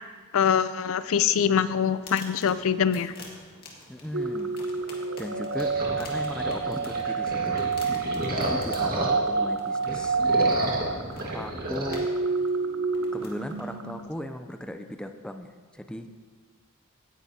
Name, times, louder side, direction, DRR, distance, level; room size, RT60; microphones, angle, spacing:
voice 1, 0.3-3.1, left 8 dB, 65° left, 14 dB, 0.4 m, -24 dB
sound 1, 1.7-14.4, left 2 dB, 45° left, 2.0 m, -49 dB
voice 2, 3.9-7.7 8.3-10.2 11.3-12.2 13.1-16.1, equal, 5° left, 6 dB, 0.4 m, -37 dB
sound 2, 4.1-14.0, right 4 dB, 60° right, 0.7 m, -28 dB
sound 3, 5.6-9.4 9.8-12.0, right 1 dB, 40° right, 1.7 m, -32 dB
17.0 x 9.9 x 2.8 m, 1.5 s
head